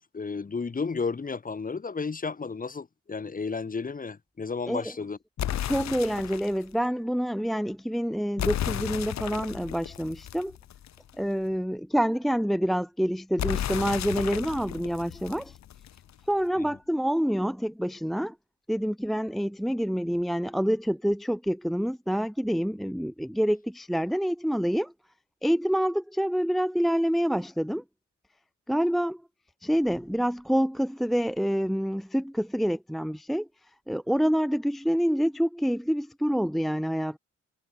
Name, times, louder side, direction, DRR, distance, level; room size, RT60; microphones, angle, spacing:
voice 1, 0.0-5.2 16.6-16.8, left 4 dB, 30° left, 2.1 m, -33 dB
sound 1, 5.4-6.6 8.4-11.1 13.4-16.1, left 11 dB, 65° left, 1.5 m, -33 dB
voice 2, 5.6-10.6 11.2-15.6 16.3-18.3 18.7-24.9 25.4-27.8 28.7-29.2 29.6-33.5 33.9-37.2, equal, ahead, 0.7 m, -27 dB
cardioid pair, 90°, 30 cm